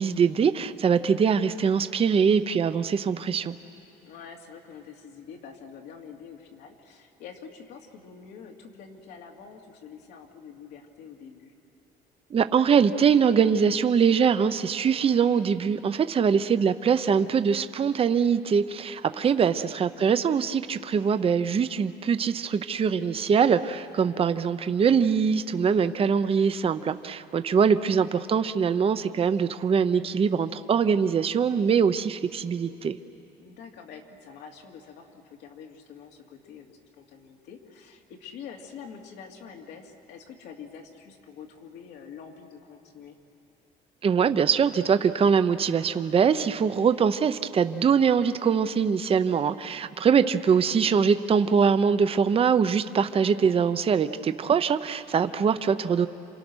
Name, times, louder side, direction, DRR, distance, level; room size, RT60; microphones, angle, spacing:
voice 1, 0.0-3.6 12.3-33.0 44.0-56.1, right 6 dB, 35° right, 11 dB, 0.7 m, -23 dB
voice 2, 4.0-11.5 19.1-19.2 27.4-27.7 33.4-43.2 50.2-50.5, left 6 dB, 85° left, 1 dB, 2.7 m, -46 dB
28.5 x 26.5 x 6.3 m, 2.9 s
cardioid pair, 110°, 17 cm